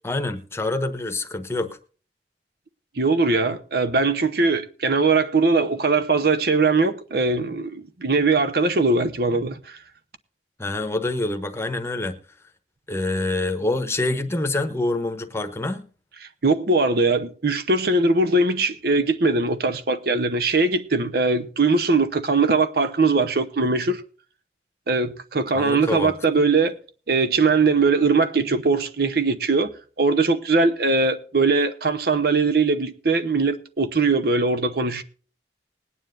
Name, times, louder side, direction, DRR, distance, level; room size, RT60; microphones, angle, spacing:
voice 1, 0.0-1.8 10.6-12.2 12.9-15.9 25.5-26.1, left 2 dB, 15° left, 1.0 m, -26 dB
voice 2, 3.0-9.8 16.4-24.0 24.9-26.8 27.1-29.7 30.0-35.0, right 3 dB, 60° right, 0.9 m, -21 dB
20.5 x 9.6 x 2.6 m
head